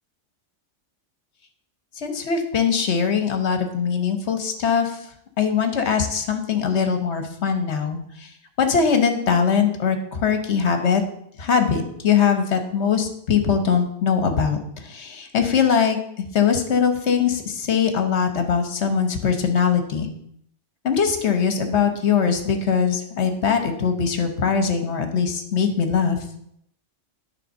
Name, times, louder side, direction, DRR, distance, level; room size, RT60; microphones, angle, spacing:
voice 1, 2.0-5.0 5.4-8.3 8.6-11.0 11.4-20.1 20.8-26.2, left 6 dB, 65° left, 7 dB, 1.3 m, -21 dB
10.0 x 3.7 x 6.4 m, 0.72 s
omnidirectional pair, 1.3 m